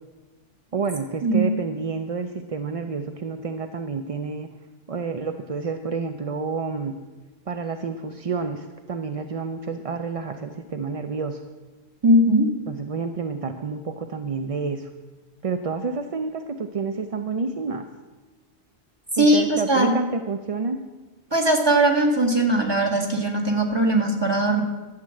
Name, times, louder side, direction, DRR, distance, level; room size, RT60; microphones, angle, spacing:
voice 1, 0.7-4.5 4.9-7.0 7.5-11.4 12.7-14.9 15.4-17.9 19.2-20.8, right 4 dB, 40° right, 7 dB, 0.5 m, -29 dB
voice 2, 12.0-12.5 19.1-19.9 21.3-24.6, right 1 dB, 25° right, 2 dB, 1.7 m, -19 dB
12.0 x 7.5 x 7.6 m, 1.2 s
omnidirectional pair, 1.1 m